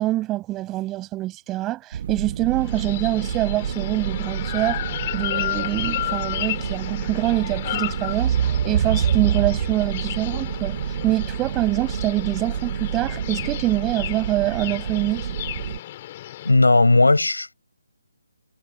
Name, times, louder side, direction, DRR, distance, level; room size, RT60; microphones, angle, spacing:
voice 1, 0.0-4.8 5.1-8.3 8.6-10.8 11.0-15.3, right 16 dB, 15° right, 6.2 m, -25 dB
sound 1, 1.9-15.8, right 9 dB, 40° right, 1.5 m, -27 dB
sound 2, 2.5-16.5, left 13 dB, 30° left, 3.1 m, -33 dB
voice 2, 16.4-17.5, left 2 dB, 85° left, 6.0 m, -16 dB
figure-of-eight pair, 150°, 0 cm